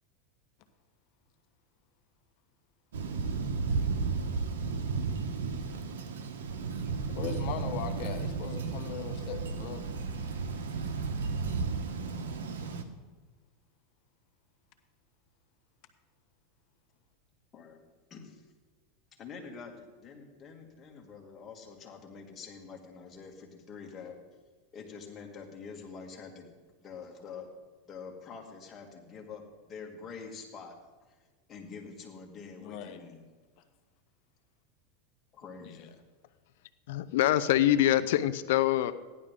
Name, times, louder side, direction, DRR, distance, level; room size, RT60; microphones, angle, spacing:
Thunder, 2.9-12.8, right 4 dB, 90° right, 1.2 m, -33 dB
voice 1, 7.1-9.9 32.6-33.0 35.6-35.9, left 7 dB, 55° left, 7 dB, 1.3 m, -39 dB
voice 2, 18.1-18.4 19.2-24.2 24.7-26.5 26.8-27.5 27.9-30.7 31.5-33.2 35.3-36.0, left 5 dB, 25° left, 0 dB, 2.5 m, -46 dB
voice 3, 36.9-39.0, left 13 dB, 70° left, 13 dB, 0.6 m, -25 dB
15.0 x 11.0 x 3.8 m, 1.3 s
supercardioid pair, 130°, 0 cm